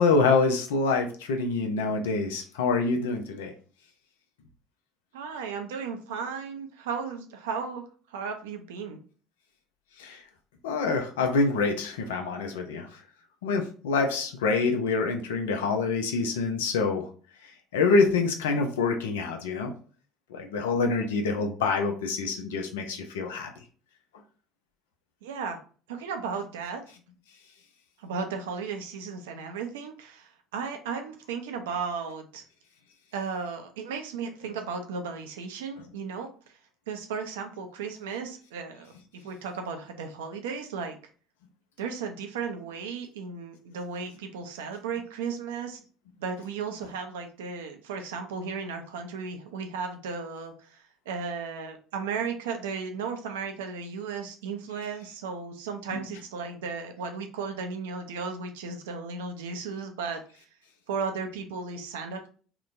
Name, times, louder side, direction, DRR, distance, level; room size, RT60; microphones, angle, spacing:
voice 1, 0.0-3.5 10.0-10.2 10.6-13.0 13.4-17.1 17.7-19.7 20.3-23.5 55.9-56.0, left 4 dB, 80° left, 5 dB, 0.5 m, -26 dB
voice 2, 5.1-9.0 25.2-25.6 25.9-26.8 28.0-32.4 33.1-36.3 36.9-41.0 41.8-45.8 46.2-60.2 60.9-62.3, right 5 dB, 80° right, 5 dB, 0.4 m, -35 dB
2.8 x 2.1 x 2.5 m, 0.40 s
hypercardioid pair, 65°, 0 cm